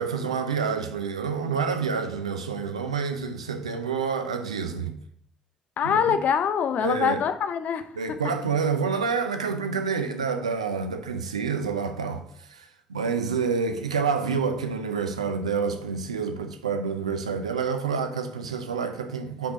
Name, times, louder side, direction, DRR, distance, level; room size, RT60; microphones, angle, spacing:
voice 1, 0.0-5.0 5.8-6.2 6.8-7.2 8.0-19.5, right 5 dB, 80° right, 0.5 m, -28 dB
voice 2, 5.8-7.9, left 7 dB, 50° left, 0.5 m, -24 dB
5.0 x 4.5 x 5.1 m
figure-of-eight pair, 45°, 3 cm